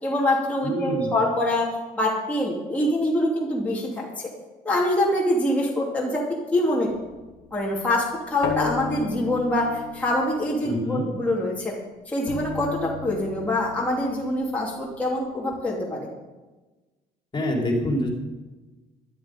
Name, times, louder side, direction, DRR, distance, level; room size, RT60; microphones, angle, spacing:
voice 1, 0.0-1.7 2.0-4.3 4.6-6.2 6.5-6.9 7.5-11.7 12.1-16.1, left 1 dB, 10° left, -5 dB, 3.0 m, -24 dB
voice 2, 0.6-1.1 10.6-11.1 17.3-18.1, equal, 25° left, 0 dB, 3.6 m, -25 dB
sound 1, 6.9-11.7 12.3-15.5, left 7 dB, 85° left, 1.5 m, -36 dB
13.0 x 12.0 x 5.3 m, 1.2 s
cardioid pair, 110°, 17 cm